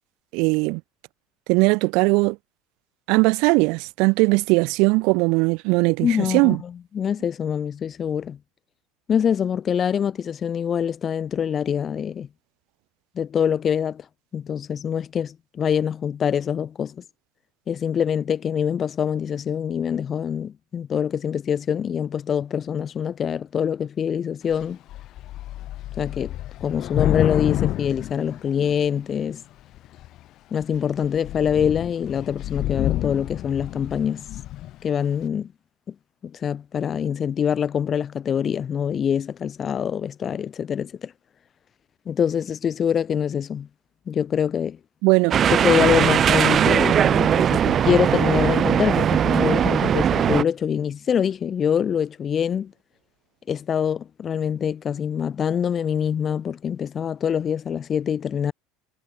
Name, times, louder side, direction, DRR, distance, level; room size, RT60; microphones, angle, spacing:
voice 1, 0.3-0.8 1.5-2.4 3.1-6.6 45.0-45.4, right 28 dB, 65° right, 2.6 m, -19 dB
voice 2, 6.0-8.4 9.1-12.3 13.2-14.0 14.3-17.0 17.7-24.8 26.0-26.3 26.6-29.4 30.5-34.3 34.8-35.5 35.9-36.0 36.2-41.1 42.1-43.7 44.1-44.8 45.5-52.7 53.5-58.5, left 8 dB, 35° left, 1.9 m, -24 dB
Thunder / Rain, 24.5-24.6 24.9-29.0 29.7-30.2 30.6-30.8 31.0-34.8, left 14 dB, 55° left, 5.9 m, -29 dB
sound 1, 45.3-50.4, right 9 dB, 40° right, 0.6 m, -19 dB
hypercardioid pair, 75°, 0 cm